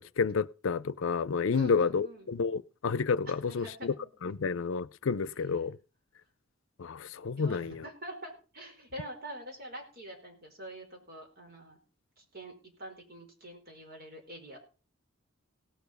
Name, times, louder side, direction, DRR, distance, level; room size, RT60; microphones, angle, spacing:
voice 1, 0.0-3.9 4.2-5.8 6.8-7.8, left 5 dB, 75° left, 0.5 m, -30 dB
voice 2, 1.5-2.3 3.3-4.1 7.3-11.8 12.2-12.5 12.8-14.6, right 1 dB, 50° right, 4.8 m, -45 dB
17.5 x 7.0 x 5.4 m
head